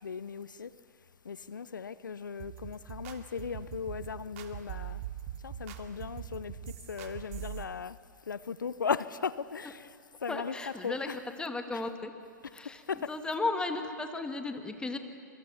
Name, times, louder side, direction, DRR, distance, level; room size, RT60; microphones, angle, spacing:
voice 1, 0.0-0.7 1.3-5.0 5.4-6.5 6.9-8.0 8.3-9.9 10.2-11.2 11.7-11.8 12.9-13.1, left 6 dB, 80° left, 0.7 m, -37 dB
sound 1, 2.4-7.6, right 11 dB, 50° right, 2.5 m, -42 dB
voice 2, 10.3-12.1 12.5-15.0, left 3 dB, 10° left, 2.0 m, -35 dB
27.5 x 24.0 x 7.2 m
figure-of-eight pair, 110°, 10 cm